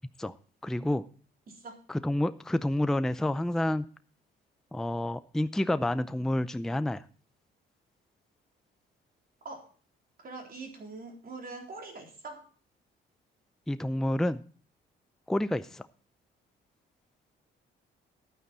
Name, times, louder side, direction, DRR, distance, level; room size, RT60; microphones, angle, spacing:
voice 1, 0.6-1.0 1.9-3.9 4.7-7.0 13.7-14.4 15.3-15.9, left 1 dB, ahead, 12 dB, 0.5 m, -29 dB
voice 2, 1.5-1.8 9.4-9.7 10.2-12.5, right 3 dB, 50° right, 2 dB, 3.6 m, -43 dB
11.5 x 9.1 x 4.1 m, 0.42 s
cardioid pair, 90°, 20 cm